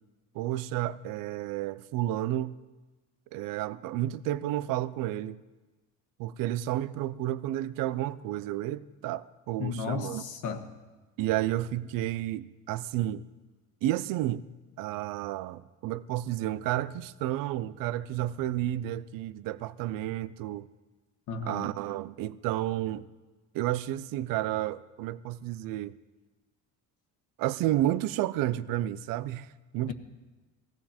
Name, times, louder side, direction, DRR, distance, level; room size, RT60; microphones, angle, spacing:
voice 1, 0.3-2.6 3.3-5.4 6.2-10.2 11.2-13.2 13.8-14.4 14.8-20.7 21.5-23.0 23.5-26.0 27.4-29.5 29.7-29.9, right 14 dB, 75° right, 0.6 m, -31 dB
voice 2, 9.6-10.7 21.3-21.7, left 5 dB, 60° left, 1.6 m, -34 dB
19.0 x 16.0 x 4.4 m
cardioid pair, 150°, 33 cm